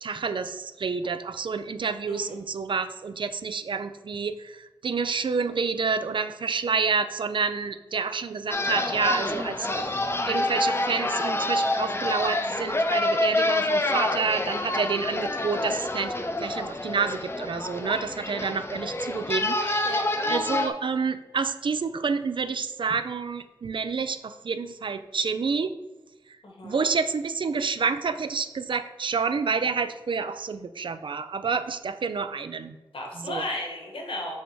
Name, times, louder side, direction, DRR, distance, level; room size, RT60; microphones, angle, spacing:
voice 1, 0.0-9.7 10.3-16.1 16.4-25.7 26.6-32.8 33.2-33.4, right 5 dB, 65° right, 11 dB, 0.4 m, -29 dB
sound 1, 8.5-20.7, left 2 dB, 25° left, 0.5 m, -27 dB
voice 2, 26.4-26.8 32.9-34.4, left 1 dB, 85° left, 1 dB, 1.2 m, -34 dB
6.3 x 3.4 x 4.6 m, 1.1 s
wide cardioid pair, 80°, 9 cm